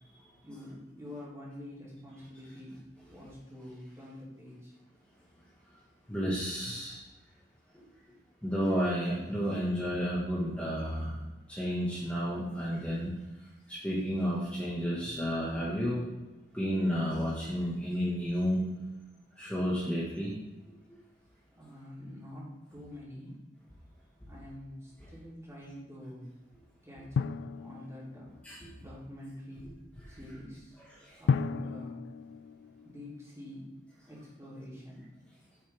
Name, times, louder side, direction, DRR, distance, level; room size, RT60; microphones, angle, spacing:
voice 1, 0.4-2.8 3.1-4.7 21.6-23.4 24.3-26.3 26.8-27.3 27.6-28.3 28.8-29.8 30.1-30.8 31.2-32.0 32.8-33.7 34.1-35.1, left 1 dB, 15° right, -6 dB, 3.1 m, -46 dB
voice 2, 6.1-7.0 8.4-11.2 11.5-13.1 13.7-16.0 16.5-18.7 19.4-20.3 28.4-28.6, equal, 10° left, -7 dB, 1.6 m, -31 dB
Drum, 27.2-28.7 31.3-33.4, left 6 dB, 85° left, 0.3 m, -33 dB
9.7 x 6.9 x 3.5 m, 1.1 s
head